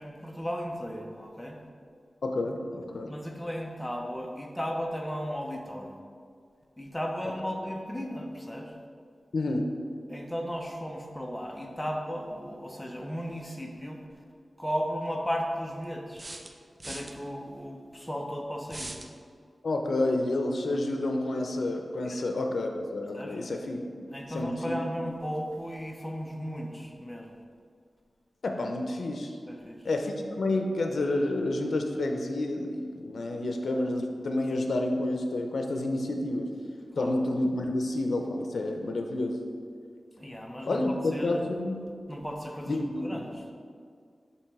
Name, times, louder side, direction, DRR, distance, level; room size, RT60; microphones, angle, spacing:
voice 1, 0.0-1.6 3.1-5.9 6.8-8.7 10.1-14.0 14.6-16.3 16.9-18.9 22.0-22.3 23.1-23.4 24.1-27.4 29.5-29.8 36.9-37.2 40.2-41.4 42.1-43.5, equal, 5° left, 1 dB, 0.7 m, -35 dB
voice 2, 2.2-3.1 9.3-9.6 19.6-23.8 24.3-24.8 28.4-29.4 29.8-36.5 37.0-39.4 40.7-41.8 42.7-43.3, left 2 dB, 80° left, 3 dB, 0.6 m, -29 dB
sound 1, 14.1-14.2 16.2-17.1 18.7-19.1, right 2 dB, 35° right, 0.5 m, -40 dB
7.0 x 3.0 x 4.7 m, 2.1 s
wide cardioid pair, 65°, 0 cm